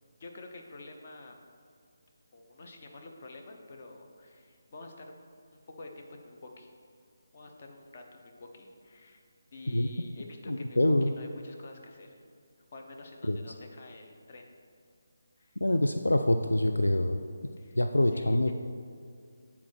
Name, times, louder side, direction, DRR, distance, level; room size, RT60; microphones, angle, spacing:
voice 1, 0.2-1.4 2.3-5.1 5.5-6.7 7.3-9.2 9.5-12.3 12.7-14.5 15.4-15.6 17.6-17.8 18.1-18.5, left 2 dB, 45° left, 3 dB, 0.8 m, -48 dB
voice 2, 10.5-11.1 13.3-13.4 15.6-17.2 17.8-18.5, left 1 dB, 80° left, 6 dB, 0.3 m, -25 dB
8.4 x 4.3 x 4.1 m, 2.2 s
figure-of-eight pair, 150°, 0 cm